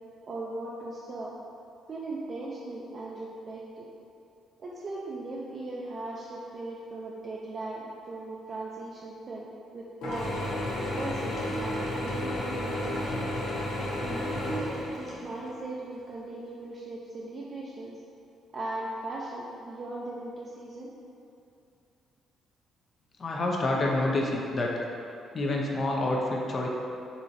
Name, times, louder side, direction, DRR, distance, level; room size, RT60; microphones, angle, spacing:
voice 1, 0.3-1.3 1.9-3.9 4.6-9.5 9.7-10.3 10.9-13.2 14.0-14.7 15.0-17.9 18.5-20.9, right 2 dB, 45° right, -5 dB, 0.4 m, -38 dB
Mechanisms / Drill, 10.0-15.5, left 1 dB, 90° left, 0.7 m, -32 dB
voice 2, 23.2-24.7 25.3-26.7, left 2 dB, 40° left, -1 dB, 0.5 m, -27 dB
4.0 x 2.9 x 2.6 m, 2.6 s
cardioid pair, 90°, 0 cm